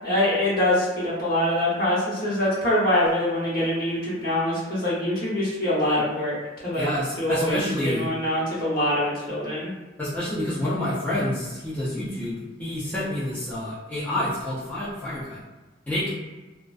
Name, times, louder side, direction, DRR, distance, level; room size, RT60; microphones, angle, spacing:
voice 1, 0.0-6.9 7.2-9.7, left 1 dB, 50° left, -7 dB, 0.9 m, -24 dB
voice 2, 6.8-8.1 10.0-15.4 15.9-16.1, left 1 dB, 10° left, -9 dB, 0.4 m, -28 dB
2.4 x 2.2 x 2.3 m, 1.2 s
head